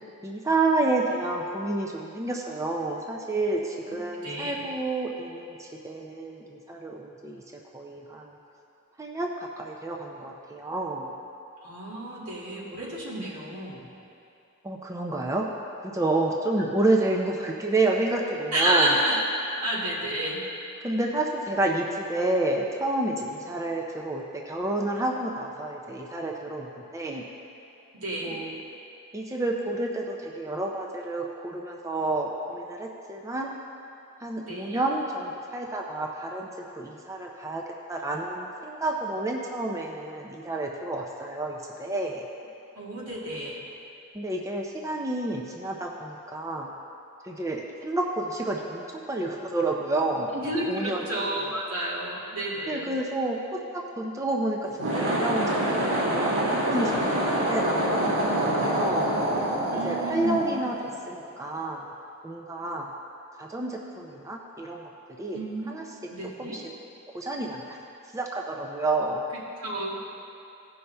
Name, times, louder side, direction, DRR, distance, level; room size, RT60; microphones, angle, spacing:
voice 1, 0.2-7.4 7.7-8.4 9.0-11.1 14.6-15.5 15.8-18.9 20.8-27.2 28.2-28.6 29.1-33.5 34.2-36.5 36.7-42.2 44.1-46.7 47.2-51.4 52.7-59.1 59.8-60.8 61.1-61.9 62.2-62.9 63.4-64.9 65.2-65.4 65.7-65.9 66.4-66.6 67.1-67.8 68.1-69.3, right 2 dB, 15° right, 0 dB, 0.5 m, -29 dB
voice 2, 4.2-4.6 11.6-13.8 18.5-19.2 19.6-20.4 27.9-28.4 34.4-34.8 42.7-43.6 50.3-52.9 59.7-60.5 65.3-65.7 66.1-66.6 69.6-70.0, right 1 dB, 85° right, -5 dB, 2.1 m, -30 dB
sound 1, 54.7-61.2, right 1 dB, 65° right, 1.9 m, -26 dB
16.5 x 5.5 x 3.4 m, 2.7 s
head